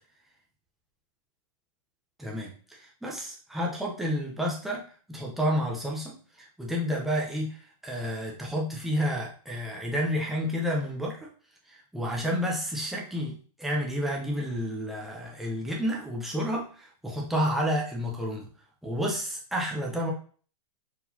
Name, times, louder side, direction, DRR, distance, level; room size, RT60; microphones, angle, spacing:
voice 1, 2.2-4.8 5.1-7.6 7.8-11.2 11.7-18.5 18.8-20.1, equal, ahead, -3 dB, 0.5 m, -30 dB
4.5 x 3.8 x 2.7 m, 0.43 s
supercardioid pair, 170°, 18 cm